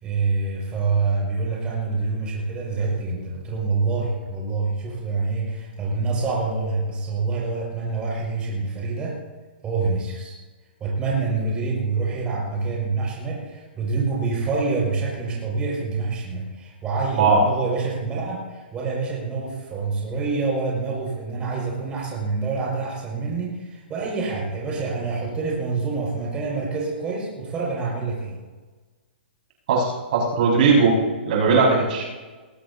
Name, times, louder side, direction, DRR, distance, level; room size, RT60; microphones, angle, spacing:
voice 1, 0.0-9.2 9.6-10.4 10.8-28.4, right 4 dB, 15° right, -4 dB, 6.0 m, -26 dB
voice 2, 29.7-31.0 31.2-32.1, right 4 dB, 55° right, -3 dB, 5.7 m, -18 dB
21.0 x 17.0 x 2.9 m, 1.3 s
hypercardioid pair, 155°, 6 cm